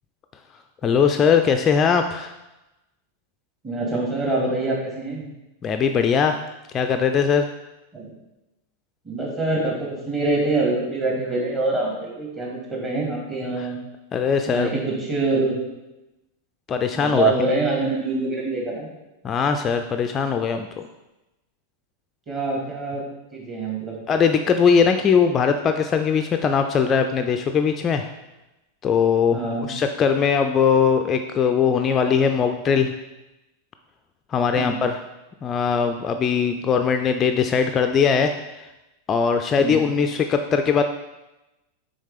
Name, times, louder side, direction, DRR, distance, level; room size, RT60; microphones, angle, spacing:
voice 1, 0.8-2.3 5.6-6.4 6.7-7.5 13.6-13.7 14.1-14.7 16.7-17.3 19.2-20.8 24.1-28.1 28.8-32.9 34.3-35.0 35.4-38.7 39.1-40.8, left 6 dB, 25° left, 6 dB, 0.4 m, -20 dB
voice 2, 3.6-5.2 7.9-8.1 9.0-13.8 14.5-15.6 16.9-18.9 22.3-23.0 23.3-23.9 29.3-29.7 34.6-34.8 39.6-39.8, right 2 dB, 25° right, -3 dB, 2.3 m, -25 dB
6.4 x 4.1 x 5.0 m, 0.99 s
figure-of-eight pair, 90°, 0 cm